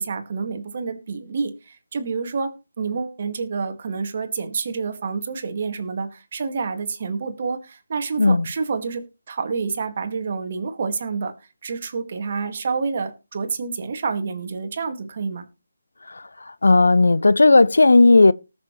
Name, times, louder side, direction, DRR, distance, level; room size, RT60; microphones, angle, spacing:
voice 1, 0.0-11.3 11.6-15.5, right 5 dB, 45° right, 1.8 m, -28 dB
voice 2, 16.6-18.3, left 3 dB, 75° left, 0.5 m, -14 dB
19.0 x 6.4 x 3.1 m
figure-of-eight pair, 155°, 0 cm